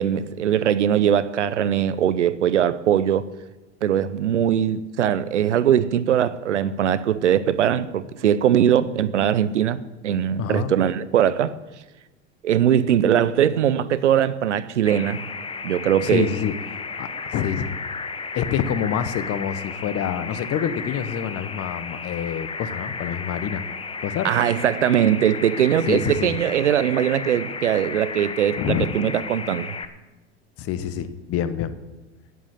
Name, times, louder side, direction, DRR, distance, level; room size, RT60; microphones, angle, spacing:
voice 1, 0.0-3.3 3.8-11.5 12.4-15.2 15.6-16.3 24.2-29.8, right 10 dB, 90° right, 0.7 m, -21 dB
voice 2, 10.4-10.7 16.0-16.6 17.0-17.7 18.3-23.6 24.0-24.3 25.9-26.4 28.6-28.8 30.6-31.7, left 9 dB, 45° left, 1.1 m, -26 dB
sound 1, 14.9-29.8, left 5 dB, 15° left, 0.9 m, -34 dB
9.1 x 8.9 x 8.9 m
hypercardioid pair, 85°, 34 cm